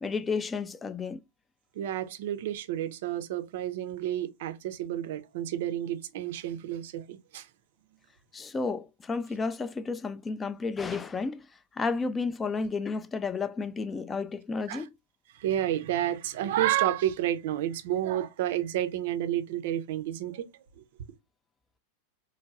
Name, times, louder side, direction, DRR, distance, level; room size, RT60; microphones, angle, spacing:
voice 1, 0.0-1.2 8.3-11.4 11.8-14.9, left 4 dB, 15° left, 0.3 m, -32 dB
voice 2, 1.8-7.5 14.7-14.8 15.3-20.4, right 12 dB, 55° right, 0.5 m, -30 dB
4.5 x 2.2 x 2.4 m
figure-of-eight pair, 90°, 0 cm